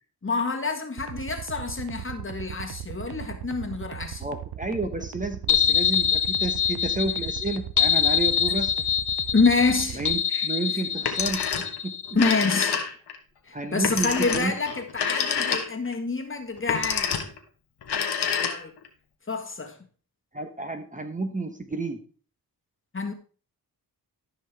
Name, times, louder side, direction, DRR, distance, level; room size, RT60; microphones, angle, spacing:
voice 1, 0.2-4.2 9.3-10.5 10.7-10.8 12.1-12.8 13.4-17.2 18.2-18.7 19.3-19.8 22.9-23.1, left 4 dB, 30° left, 1.5 m, -27 dB
sound 1, 1.0-10.2, right 12 dB, 75° right, 0.8 m, -37 dB
voice 2, 4.2-8.7 10.0-11.5 11.8-12.0 13.5-14.5 20.3-22.0, right 3 dB, 20° right, 1.1 m, -31 dB
sound 2, 5.5-12.1, left 8 dB, 50° left, 1.2 m, -25 dB
Telephone, 10.9-11.8 12.1-13.2 13.8-15.9 16.6-17.4 17.8-18.9, left 7 dB, 80° left, 1.4 m, -27 dB
13.0 x 5.6 x 3.4 m
cardioid pair, 70°, 39 cm